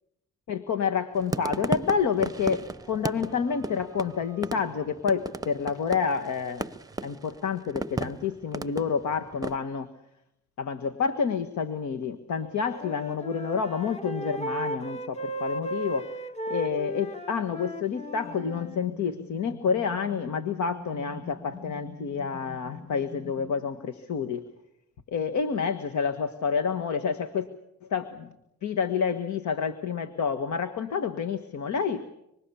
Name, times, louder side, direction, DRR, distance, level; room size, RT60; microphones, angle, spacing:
voice 1, 0.5-6.7 7.0-9.9 10.6-16.2 16.5-24.5 25.1-27.5 27.9-28.3 28.6-32.1, left 6 dB, 70° left, 8 dB, 1.5 m, -29 dB
sound 1, 1.2-9.6, right 2 dB, 10° right, 0.9 m, -35 dB
Wind instrument woodwind instrument, 12.4-18.8, right 1 dB, 20° left, 1.5 m, -35 dB
sound 2, 18.2-23.5, left 2 dB, 85° left, 5.3 m, -45 dB
25.5 x 25.5 x 7.1 m, 0.83 s
cardioid pair, 90°, 30 cm